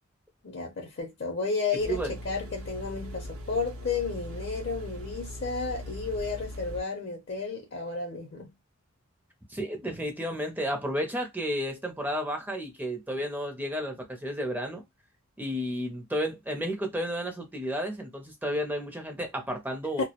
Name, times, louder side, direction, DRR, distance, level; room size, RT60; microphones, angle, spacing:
voice 1, 0.4-8.5 20.0-20.1, left 4 dB, 55° left, 0.5 m, -32 dB
sound 1, 1.8-6.8, equal, 85° right, 0.6 m, -40 dB
voice 2, 9.5-14.8 15.4-20.1, equal, 10° right, 0.5 m, -32 dB
2.2 x 2.0 x 2.8 m
head